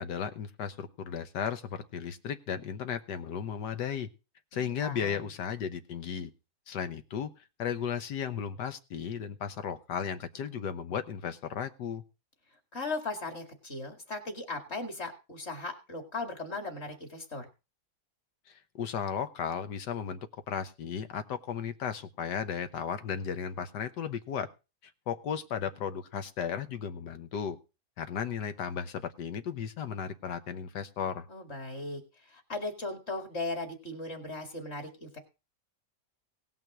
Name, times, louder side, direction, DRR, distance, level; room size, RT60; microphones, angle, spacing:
voice 1, 0.0-4.1 4.5-6.3 6.7-7.3 7.6-12.0 18.5-20.2 20.5-24.5 24.8-27.6 28.0-31.3, left 7 dB, 80° left, 11 dB, 1.6 m, -35 dB
voice 2, 4.5-5.3 12.7-17.5 31.3-35.2, left 2 dB, 40° left, 6 dB, 2.4 m, -38 dB
17.5 x 5.8 x 6.0 m, 0.30 s
omnidirectional pair, 1.8 m